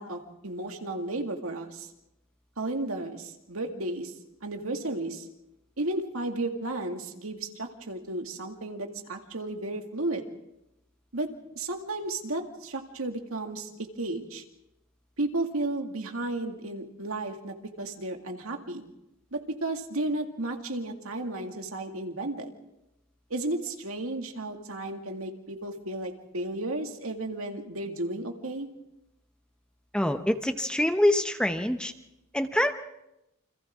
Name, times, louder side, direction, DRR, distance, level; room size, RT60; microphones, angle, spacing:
voice 1, 0.0-1.9 2.6-4.1 4.4-5.3 5.8-10.2 11.1-11.3 11.6-14.4 15.2-18.8 19.3-22.5 23.3-28.7, right 2 dB, 85° right, 3 dB, 2.2 m, -33 dB
voice 2, 29.9-31.9 32.3-32.7, left 1 dB, 5° left, 7 dB, 0.8 m, -25 dB
28.5 x 26.0 x 3.7 m, 0.90 s
head